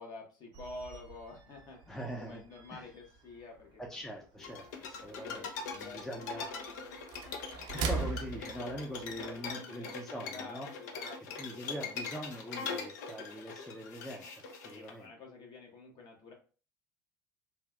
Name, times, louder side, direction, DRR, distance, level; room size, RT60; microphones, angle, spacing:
voice 1, 0.0-4.1 4.4-7.0 9.1-11.9 14.6-16.3, left 3 dB, 45° left, 0 dB, 1.1 m, -50 dB
sound 1, 0.5-9.5, right 5 dB, 50° right, 0.5 m, -42 dB
voice 2, 1.9-2.4 2.7-2.9 3.8-6.5 7.9-10.7 11.4-15.1, equal, 5° left, -1 dB, 0.5 m, -43 dB
sound 2, 4.4-14.9, left 5 dB, 65° left, 0.5 m, -42 dB
3.2 x 2.3 x 2.3 m, 0.37 s
figure-of-eight pair, 70°, 10 cm